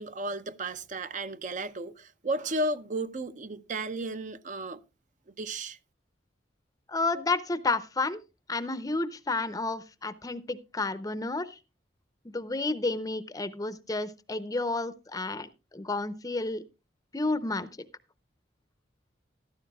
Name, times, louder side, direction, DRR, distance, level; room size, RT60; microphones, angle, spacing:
voice 1, 0.0-4.8 5.4-5.8, right 2 dB, 40° right, 0.6 m, -33 dB
voice 2, 6.9-8.2 8.5-11.6 12.2-16.6 17.1-17.7, left 3 dB, 20° left, 0.6 m, -31 dB
14.0 x 12.5 x 2.3 m
head